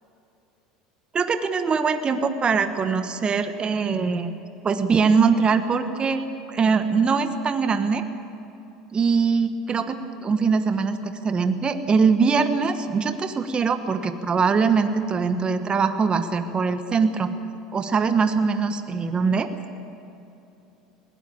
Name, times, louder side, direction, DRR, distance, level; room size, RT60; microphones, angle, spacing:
voice 1, 1.1-4.3 4.6-6.2 6.5-8.0 8.9-17.3 17.7-19.5, right 5 dB, 30° right, 8 dB, 1.3 m, -22 dB
20.0 x 17.0 x 8.7 m, 2.8 s
hypercardioid pair, 85°, 3 cm